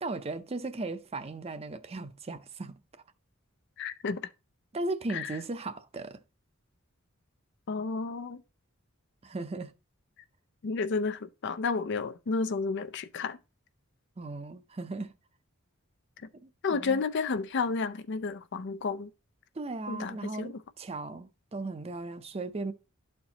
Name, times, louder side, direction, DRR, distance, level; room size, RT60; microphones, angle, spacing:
voice 1, 0.0-2.8 4.7-6.2 9.2-9.7 14.2-15.1 16.4-17.0 19.5-22.7, right 2 dB, 30° right, 0.6 m, -37 dB
voice 2, 3.8-4.2 5.1-5.3 7.7-8.4 10.6-13.4 16.6-19.1 19.9-20.6, left 4 dB, 55° left, 0.5 m, -31 dB
12.0 x 4.4 x 2.8 m
head